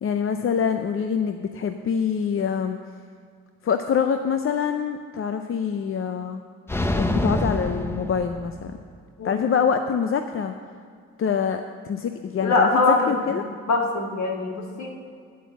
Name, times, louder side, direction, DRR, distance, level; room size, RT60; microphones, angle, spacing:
voice 1, 0.0-2.8 3.6-6.4 7.0-8.8 9.2-10.5 11.2-12.8 13.1-13.4, left 7 dB, 45° left, 7 dB, 0.6 m, -25 dB
sound 1, 6.7-8.9, left 1 dB, 10° left, 0.6 m, -26 dB
voice 2, 12.4-13.1 13.7-14.9, left 3 dB, 65° left, 1 dB, 1.9 m, -22 dB
9.6 x 8.3 x 7.0 m, 2.1 s
cardioid pair, 90°, 30 cm